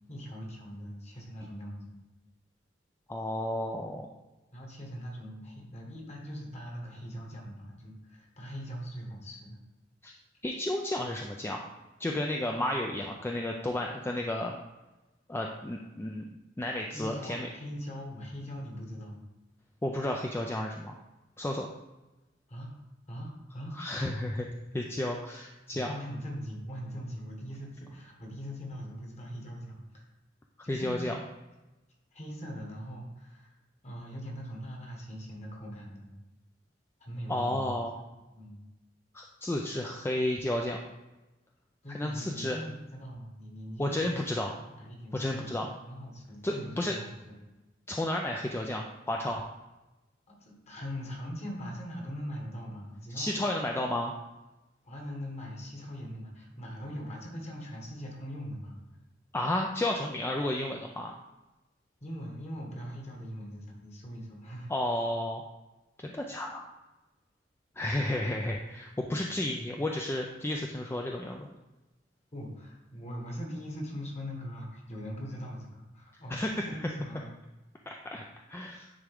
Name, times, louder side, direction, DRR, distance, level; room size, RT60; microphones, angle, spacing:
voice 1, 0.1-1.9 4.5-9.6 16.9-19.2 22.5-22.7 23.1-24.1 25.7-30.1 30.6-31.2 32.1-33.6 33.8-36.1 37.0-37.7 38.3-38.6 41.8-44.2 44.7-47.4 50.3-53.3 54.8-58.8 62.0-64.7 69.1-69.3 72.3-77.3, equal, 35° left, -1 dB, 1.5 m, -41 dB
voice 2, 3.1-4.1 10.0-10.1 10.4-11.7 12.0-14.5 15.3-16.3 16.6-17.5 19.8-21.0 21.4-21.7 23.8-24.5 24.7-26.0 30.7-31.2 37.3-38.0 39.1-40.8 41.9-42.6 43.8-44.6 45.1-45.7 46.4-47.0 47.9-49.5 53.1-54.1 59.3-61.2 64.7-65.4 66.0-66.7 67.8-71.5 76.3-76.9 77.9-78.2 78.5-78.9, left 1 dB, 15° left, 1 dB, 0.4 m, -32 dB
9.7 x 3.6 x 3.5 m, 1.0 s
head